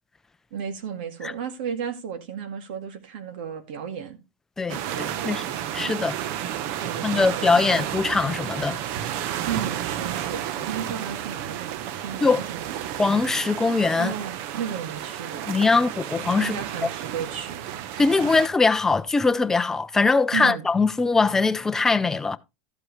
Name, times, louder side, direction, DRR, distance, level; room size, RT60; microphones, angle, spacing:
voice 1, 0.5-4.2 4.9-5.5 6.8-7.6 9.4-12.8 14.0-15.5 16.4-17.6 20.3-20.7, right 8 dB, 80° right, 2.1 m, -34 dB
voice 2, 4.6-5.4 5.7-6.2 7.0-8.8 12.2-12.4 13.0-14.1 15.5-16.9 18.0-22.4, left 4 dB, 10° left, 0.6 m, -22 dB
sound 1, 4.7-18.5, right 11 dB, 55° right, 1.0 m, -32 dB
13.5 x 7.9 x 3.2 m
supercardioid pair, 165°, 5 cm